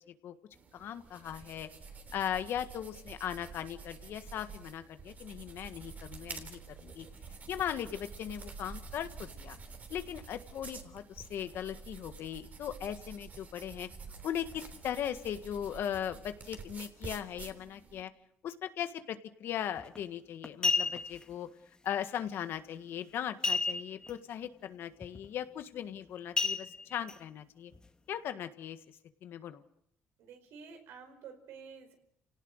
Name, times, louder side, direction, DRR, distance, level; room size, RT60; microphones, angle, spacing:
sound 1, 0.5-18.0, right 4 dB, 40° right, 3.3 m, -48 dB
voice 1, 0.7-1.7 2.1-7.1 7.5-9.6 9.9-13.9 14.2-18.1 18.4-21.5 21.8-27.7 28.1-28.8 29.2-29.6, left 10 dB, 65° left, 9 dB, 1.7 m, -38 dB
sound 2, 19.8-20.0 20.4-21.2 23.4-24.1 24.4-24.5 25.0-25.3 26.4-27.1 27.7-27.8, left 3 dB, 20° left, 1.6 m, -31 dB
voice 2, 30.2-31.9, right 6 dB, 80° right, 6 dB, 4.8 m, -50 dB
29.0 x 18.0 x 6.6 m, 0.73 s
cardioid pair, 100°, 4 cm